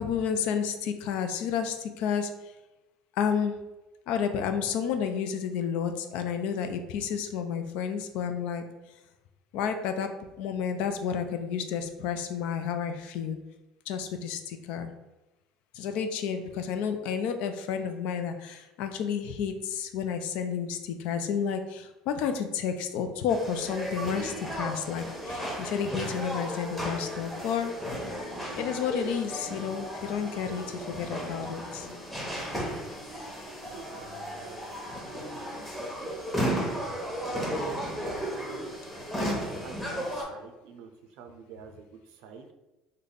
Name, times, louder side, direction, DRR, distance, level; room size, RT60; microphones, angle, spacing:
voice 1, 0.0-2.3 3.2-3.6 4.1-8.6 9.5-10.1 10.4-13.4 13.9-14.9 15.7-27.7 28.6-31.9, left 7 dB, 75° left, 8 dB, 0.4 m, -31 dB
sound 1, 23.3-40.2, equal, 5° left, 0.9 m, -34 dB
voice 2, 33.7-34.9 35.4-35.7 36.0-36.9 37.6-38.8 39.4-40.9 41.2-42.5, right 5 dB, 75° right, 5 dB, 0.5 m, -48 dB
3.3 x 2.2 x 3.9 m, 1.0 s
supercardioid pair, 100°, 2 cm